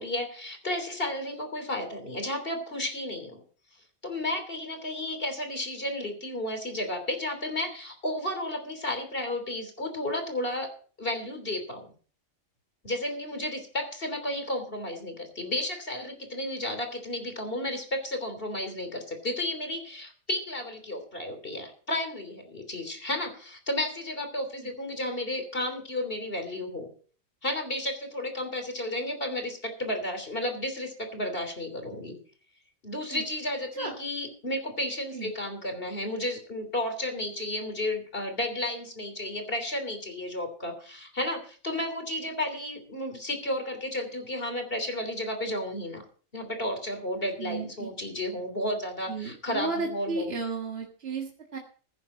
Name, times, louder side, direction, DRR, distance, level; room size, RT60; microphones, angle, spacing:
voice 1, 0.0-3.4 4.0-10.7 11.0-11.9 12.8-26.9 27.4-32.2 32.8-46.0 46.3-50.3, left 1 dB, 45° left, 6 dB, 3.4 m, -32 dB
voice 2, 47.4-47.9 49.1-51.6, right 4 dB, 50° right, 1 dB, 2.0 m, -34 dB
16.0 x 10.5 x 4.3 m, 0.43 s
omnidirectional pair, 1.4 m